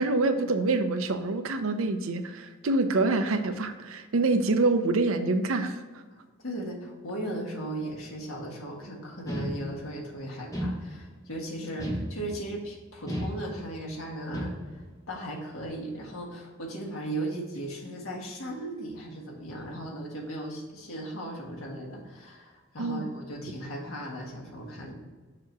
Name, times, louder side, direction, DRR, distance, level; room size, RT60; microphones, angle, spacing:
voice 1, 0.0-5.8 22.8-23.1, right 3 dB, 80° right, 8 dB, 0.6 m, -26 dB
voice 2, 6.4-24.9, right 1 dB, 85° left, -2 dB, 1.6 m, -37 dB
sound 1, 9.3-10.0 10.5-11.3 11.8-12.6 13.1-13.9 14.3-14.9, equal, 15° left, 0.8 m, -34 dB
6.8 x 2.8 x 5.8 m, 1.4 s
head